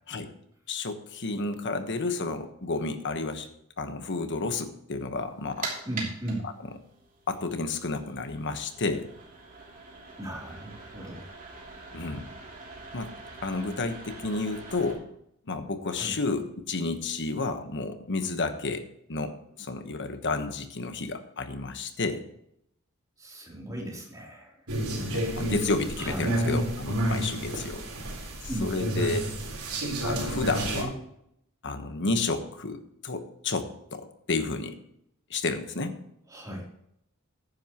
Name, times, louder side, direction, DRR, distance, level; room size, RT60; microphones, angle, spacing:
voice 1, 0.7-3.5 3.8-5.7 7.3-9.1 11.9-12.3 12.9-13.1 13.4-15.1 15.5-22.2 25.1-27.9 28.6-29.3 30.0-30.9 31.6-34.8 35.3-35.9, left 3 dB, 55° left, 8 dB, 1.2 m, -31 dB
sound 1, 5.2-14.9, right 3 dB, 40° right, 3.0 m, -43 dB
voice 2, 5.8-6.5 10.2-11.3 15.9-16.1 23.2-24.7 26.0-26.4 28.5-28.7 36.3-36.7, right 1 dB, 15° right, -2 dB, 3.3 m, -36 dB
sound 2, 24.7-30.8, right 1 dB, 80° right, 3.7 m, -30 dB
14.5 x 10.0 x 3.0 m, 0.75 s
head